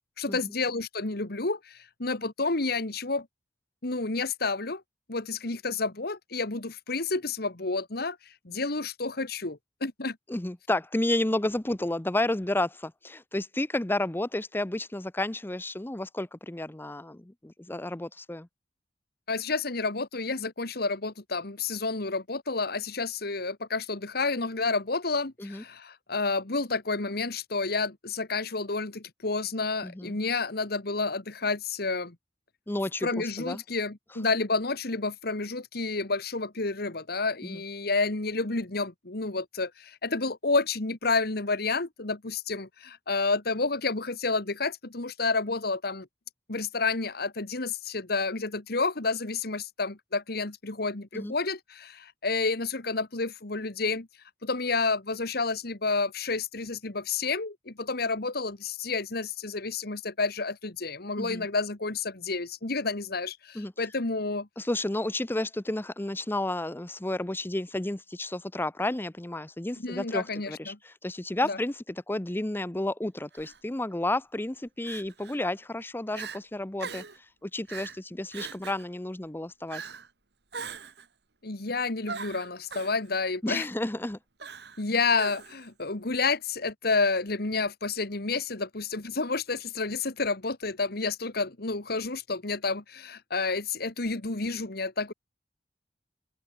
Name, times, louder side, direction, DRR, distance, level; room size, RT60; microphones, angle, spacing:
voice 1, 0.2-3.3 3.8-4.8 5.1-8.2 8.5-10.2 19.3-32.2 33.0-46.1 46.5-54.1 54.4-64.5 69.8-70.8 71.5-71.6 81.4-83.7 84.8-95.1, left 3 dB, 60° left, 1.8 m, -30 dB
voice 2, 10.3-18.5 25.4-25.6 29.8-30.2 32.7-33.6 37.4-37.6 51.1-51.3 61.2-61.5 63.5-63.9 64.6-77.0 77.4-79.8 83.4-84.2, left 1 dB, 10° left, 0.7 m, -31 dB
Crying sobbing, 73.3-73.6 74.8-75.4 75.8-75.9 76.1-76.4 76.8-77.2 77.7-78.0 78.3-78.8 79.7-80.1 80.5-81.1 82.1-82.9 84.4-84.8 85.1-85.7, right 5 dB, 70° right, 3.0 m, -40 dB
open air
head